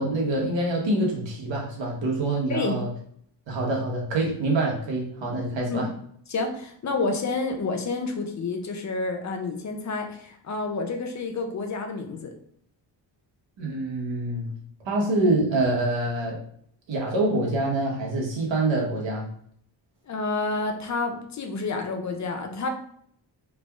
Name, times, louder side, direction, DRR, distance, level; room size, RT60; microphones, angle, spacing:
voice 1, 0.0-2.9 3.5-5.9 13.6-14.5 14.8-16.4 16.9-19.3, right 2 dB, 85° right, -2 dB, 1.3 m, -25 dB
voice 2, 5.4-5.9 6.3-12.3 20.1-22.7, left 3 dB, 40° left, 4 dB, 0.5 m, -29 dB
4.0 x 3.4 x 2.4 m, 0.66 s
wide cardioid pair, 175°, 44 cm